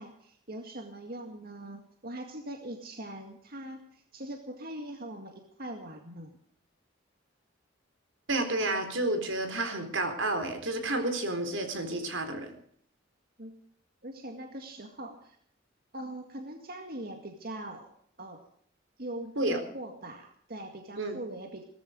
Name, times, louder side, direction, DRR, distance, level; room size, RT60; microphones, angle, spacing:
voice 1, 0.0-6.3 13.4-13.6 14.0-15.4 15.9-17.9 18.2-18.4 19.0-21.6, right 1 dB, 50° right, 4 dB, 2.0 m, -41 dB
voice 2, 8.3-12.5 19.4-19.6 21.0-21.2, right 2 dB, 80° right, 7 dB, 4.1 m, -30 dB
18.0 x 14.0 x 5.2 m, 0.64 s
head